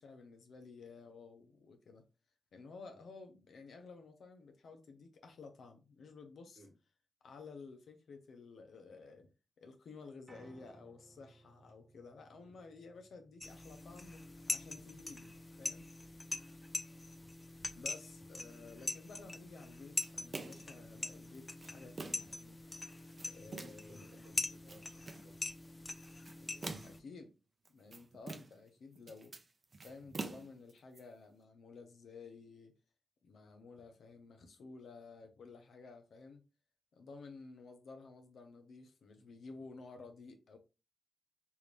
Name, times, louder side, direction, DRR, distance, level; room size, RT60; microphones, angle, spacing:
voice 1, 0.0-2.0 2.5-6.6 7.2-9.3 9.6-15.9 17.7-22.6 23.3-24.1 26.8-27.3 27.7-29.3 29.8-32.7 33.2-36.4 36.9-40.6, left 4 dB, 85° left, 0.7 m, -53 dB
Piano, 10.3-16.4, right 2 dB, 25° right, 0.8 m, -64 dB
sound 1, 13.4-27.0, left 2 dB, 30° left, 0.4 m, -43 dB
sound 2, 20.0-20.7 21.3-22.4 22.9-23.9 24.5-25.3 26.0-27.1 27.7-28.7 29.0-31.0, right 3 dB, 55° right, 0.6 m, -46 dB
voice 2, 23.3-25.4 26.4-26.8, right 1 dB, 85° right, 1.4 m, -61 dB
3.5 x 2.6 x 3.1 m
cardioid pair, 55°, 0 cm